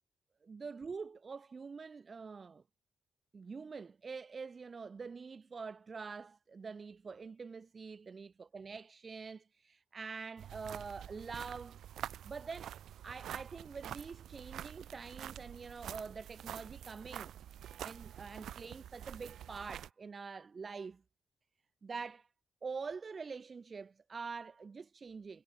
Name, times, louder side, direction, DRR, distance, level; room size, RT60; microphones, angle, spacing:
voice 1, 0.4-2.6 3.3-11.8 12.2-12.8 13.0-17.3 17.8-21.0 21.8-22.3 22.6-25.4, right 5 dB, 45° right, 3.0 m, -45 dB
sound 1, 10.4-19.9, right 10 dB, 75° right, 2.4 m, -47 dB
supercardioid pair, 50°, 0 cm